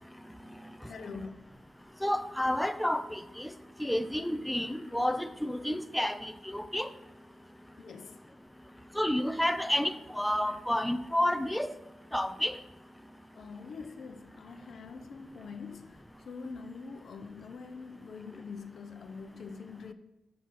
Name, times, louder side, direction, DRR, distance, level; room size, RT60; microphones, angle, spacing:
voice 1, 0.8-1.4 7.8-8.2 13.4-19.9, left 5 dB, 70° left, 0.6 m, -44 dB
voice 2, 2.0-3.5 3.8-6.9 8.9-11.7 12.1-12.6, left 1 dB, 5° left, 0.5 m, -30 dB
7.3 x 6.1 x 4.2 m
supercardioid pair, 55°, 0 cm